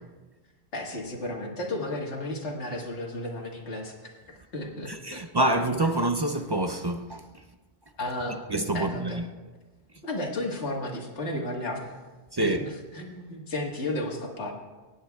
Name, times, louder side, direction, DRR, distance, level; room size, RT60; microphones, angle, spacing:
voice 1, 0.7-5.2 8.0-8.4 8.7-9.2 10.0-12.0 12.4-14.5, left 1 dB, 85° left, 1.8 m, -33 dB
voice 2, 4.9-7.3 8.5-9.2 12.3-12.6, right 1 dB, 40° right, 0.3 m, -26 dB
23.5 x 10.0 x 2.3 m
omnidirectional pair, 1.1 m